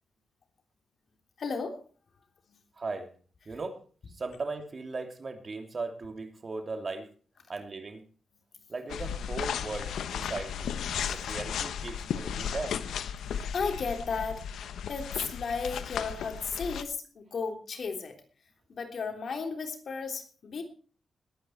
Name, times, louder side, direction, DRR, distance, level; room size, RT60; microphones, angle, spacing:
voice 1, 1.4-1.8 2.5-2.6 13.5-14.5 14.9-18.2 18.7-20.6, left 5 dB, 60° left, 3.3 m, -34 dB
voice 2, 2.8-3.1 3.5-3.8 4.1-7.1 7.5-8.0 8.7-10.7 11.1-12.8, right 3 dB, 45° right, 2.8 m, -37 dB
sound 1, 8.9-16.8, left 8 dB, 85° left, 1.0 m, -35 dB
20.5 x 9.5 x 4.6 m
cardioid pair, 70°, 0 cm